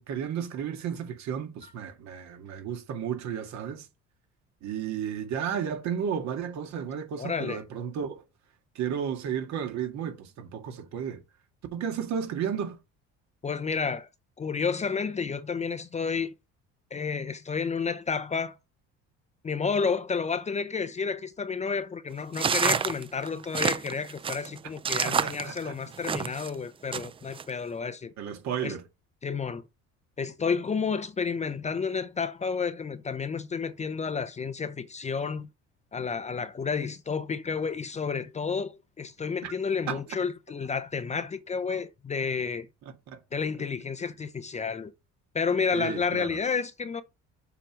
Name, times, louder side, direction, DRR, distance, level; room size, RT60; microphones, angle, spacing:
voice 1, 0.0-3.9 4.6-8.3 8.8-11.2 11.7-12.8 25.0-25.7 28.2-28.8 39.4-39.5 39.9-40.0 41.2-41.3 43.1-43.2 45.7-46.4, right 8 dB, 60° right, 1.9 m, -33 dB
voice 2, 7.2-7.6 13.4-14.1 14.4-16.3 16.9-18.6 19.4-28.1 28.6-28.7 29.2-29.6 30.2-35.5 35.9-42.7 43.3-44.9 45.3-47.0, left 5 dB, 20° left, 0.6 m, -31 dB
sound 1, 22.3-26.5 26.9-27.4, right 6 dB, 20° right, 0.3 m, -28 dB
7.0 x 4.6 x 5.1 m
cardioid pair, 120°, 31 cm